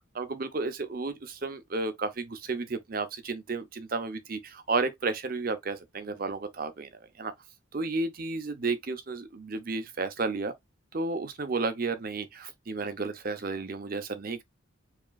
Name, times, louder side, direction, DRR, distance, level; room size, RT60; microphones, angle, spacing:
voice 1, 0.1-7.3 7.7-10.5 10.9-14.4, right 3 dB, 45° right, 0.6 m, -32 dB
4.8 x 3.0 x 2.3 m
head